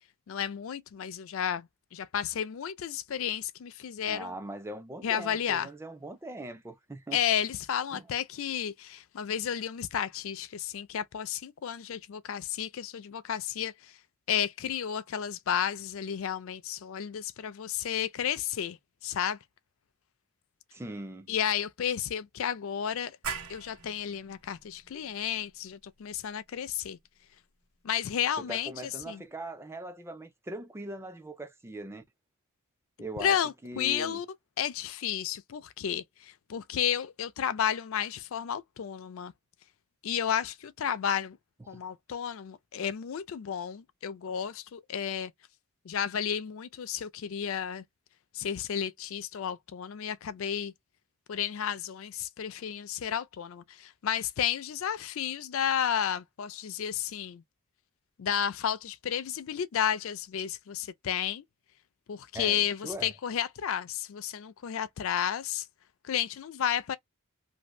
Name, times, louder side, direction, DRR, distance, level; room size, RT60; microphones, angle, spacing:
voice 1, 0.3-4.3 5.0-5.7 7.1-14.0 14.3-19.4 21.3-23.2 23.5-27.0 27.8-29.2 33.2-34.3 34.6-39.3 40.0-41.4 41.7-45.3 45.8-47.8 48.3-50.7 51.3-57.4 58.2-61.4 62.1-65.7 66.0-67.0, left 9 dB, 65° left, 0.4 m, -32 dB
voice 2, 4.1-7.2 7.9-8.1 20.7-21.3 28.4-32.0 33.0-34.2 41.7-41.8 62.3-63.1, right 1 dB, 10° right, 0.4 m, -41 dB
sound 1, 23.2-28.6, right 6 dB, 75° right, 1.0 m, -44 dB
2.6 x 2.5 x 2.9 m
head